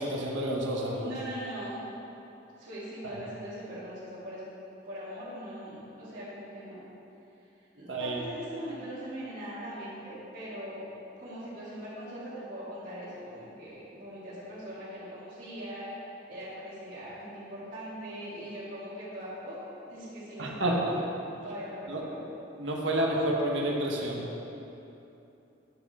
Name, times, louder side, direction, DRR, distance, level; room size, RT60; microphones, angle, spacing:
voice 1, 0.0-1.1 3.0-3.2 7.9-8.2 20.4-21.0 21.9-22.0 22.6-24.3, right 1 dB, 75° right, -2 dB, 1.2 m, -29 dB
voice 2, 1.0-1.8 2.6-4.5 4.8-6.8 7.6-10.9 11.2-15.9 16.3-19.6 19.9-21.1 21.4-22.2, equal, 45° right, -13 dB, 2.0 m, -41 dB
9.9 x 7.1 x 4.1 m, 2.9 s
head